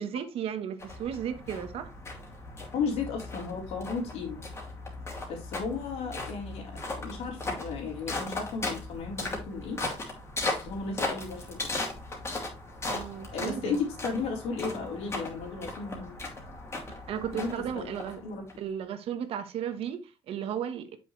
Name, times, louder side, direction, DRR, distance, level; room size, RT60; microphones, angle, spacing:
voice 1, 0.0-1.9 12.8-13.8 17.1-18.2 18.6-21.0, right 9 dB, 65° right, 1.2 m, -35 dB
sound 1, 0.8-18.5, left 2 dB, 25° left, 2.6 m, -37 dB
voice 2, 2.7-4.5 5.3-9.8 10.4-11.7 13.3-16.2 17.3-17.9 18.2-18.5, left 5 dB, 80° left, 3.6 m, -34 dB
7.8 x 6.3 x 3.2 m
cardioid pair, 135°, 11 cm